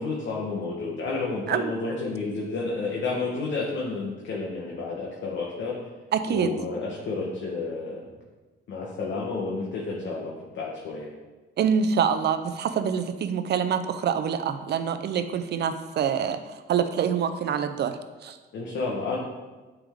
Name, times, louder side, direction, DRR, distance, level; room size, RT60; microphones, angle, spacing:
voice 1, 0.0-5.8 6.3-8.0 8.7-11.1 18.5-19.2, left 3 dB, 65° left, -3 dB, 1.1 m, -31 dB
voice 2, 6.1-6.5 11.6-18.4, right 7 dB, 60° right, 9 dB, 0.5 m, -26 dB
8.7 x 3.5 x 3.6 m, 1.2 s
cardioid pair, 90°, 20 cm